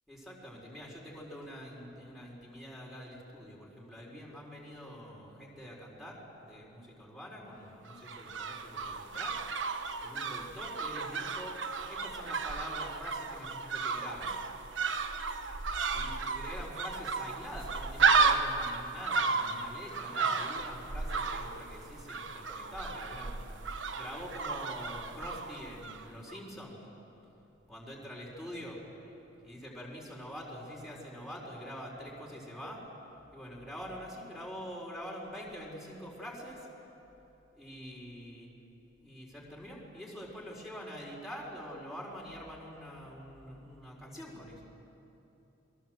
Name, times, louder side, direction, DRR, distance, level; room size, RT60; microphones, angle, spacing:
voice 1, 0.1-9.4 10.0-11.6 11.9-14.4 15.9-23.4 24.0-26.9 27.7-28.8 29.4-32.8 33.3-36.7 37.5-38.5 39.0-44.6, equal, ahead, -4 dB, 4.5 m, -45 dB
sound 1, 7.9-26.0 26.3-26.4, right 4 dB, 80° right, 1.3 m, -33 dB
28.5 x 21.5 x 7.8 m, 3.0 s
head